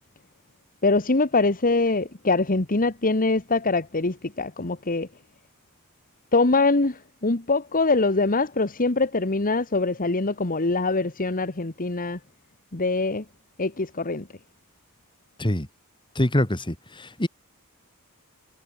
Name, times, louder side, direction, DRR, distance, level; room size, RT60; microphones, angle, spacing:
voice 1, 0.8-5.1 6.3-12.2 12.7-13.2 13.6-14.3, left 3 dB, 40° left, 1.5 m, -23 dB
voice 2, 16.2-17.3, left 1 dB, 20° left, 2.5 m, -24 dB
head